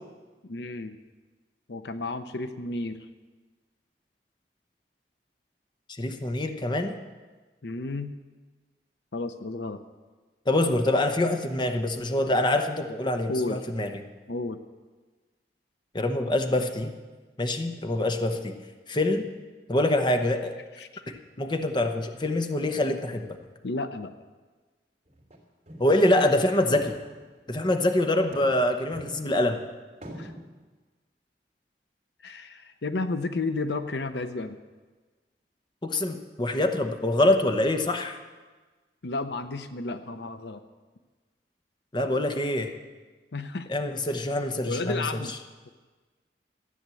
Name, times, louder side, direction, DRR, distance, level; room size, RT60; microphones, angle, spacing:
voice 1, 0.4-1.0 1.7-3.1 7.6-8.2 9.1-9.8 13.3-13.6 14.3-14.6 20.8-21.0 23.6-24.1 30.2-30.3 32.2-34.6 39.0-40.6 43.3-43.7 44.6-45.3, left 3 dB, 75° left, 10 dB, 0.7 m, -32 dB
voice 2, 5.9-6.9 10.5-13.9 15.9-16.9 17.4-18.6 18.9-19.3 19.7-20.5 21.1-23.3 25.8-26.9 27.5-29.6 35.8-38.2 41.9-42.7 43.7-45.0, left 1 dB, 25° left, 6 dB, 0.9 m, -25 dB
sound 1, 25.1-25.4 25.7-26.1 26.4-26.5 26.8-27.6 28.2-29.6 30.0-30.4, equal, 35° right, 3.0 m, -44 dB
13.5 x 9.5 x 7.6 m, 1.3 s
head